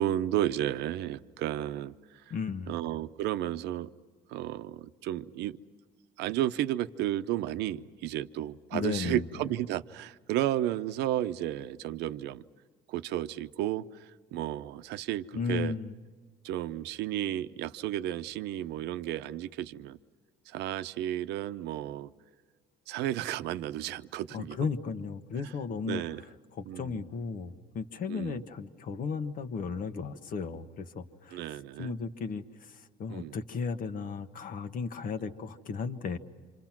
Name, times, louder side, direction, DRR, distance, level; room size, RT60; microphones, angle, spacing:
voice 1, 0.0-1.9 2.3-2.4 2.7-3.9 4.3-5.6 6.2-12.4 12.9-15.8 16.4-20.0 20.5-22.1 22.9-24.6 25.9-26.2 26.6-27.1 28.1-28.5 31.3-31.9 33.1-33.4, right 13 dB, 85° right, 11 dB, 0.8 m, -33 dB
voice 2, 2.3-2.7 8.7-9.3 15.3-15.9 24.3-26.0 26.5-31.4 31.8-36.2, left 5 dB, 55° left, 9 dB, 1.4 m, -35 dB
27.5 x 27.0 x 6.0 m, 1.5 s
cardioid pair, 110°, 17 cm